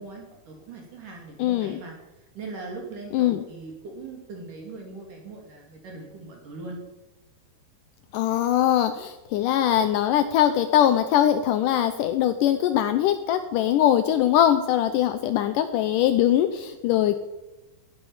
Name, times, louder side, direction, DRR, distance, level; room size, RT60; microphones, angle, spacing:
voice 1, 0.0-1.9 2.4-6.8, right 3 dB, 55° right, 0 dB, 4.2 m, -40 dB
voice 2, 1.4-1.8 3.1-3.4 8.1-17.2, left 11 dB, 80° left, 9 dB, 1.9 m, -22 dB
17.5 x 10.5 x 7.3 m, 1.0 s
omnidirectional pair, 4.6 m